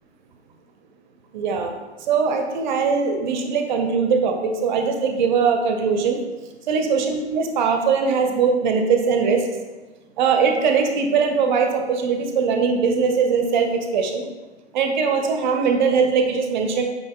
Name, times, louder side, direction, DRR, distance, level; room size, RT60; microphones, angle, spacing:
voice 1, 1.3-1.7 2.1-6.2 6.7-9.4 10.2-14.3 14.7-16.8, right 5 dB, 45° right, 4 dB, 0.6 m, -21 dB
5.1 x 3.4 x 2.3 m, 1.2 s
figure-of-eight pair, 105°, 34 cm